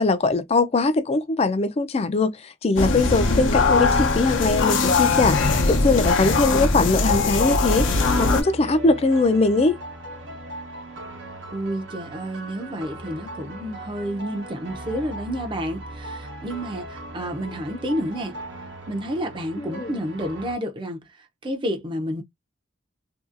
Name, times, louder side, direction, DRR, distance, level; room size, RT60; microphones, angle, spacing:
voice 1, 0.0-2.3 2.6-5.4 5.7-7.9 8.2-9.8 19.6-19.9, left 3 dB, 30° left, 0.4 m, -21 dB
sound 1, 2.8-8.4, left 3 dB, 80° left, 0.7 m, -21 dB
sound 2, 7.6-20.6, right 1 dB, 70° right, 0.9 m, -38 dB
voice 2, 11.5-18.4 18.9-22.2, equal, 25° right, 0.5 m, -30 dB
2.8 x 2.7 x 2.4 m
head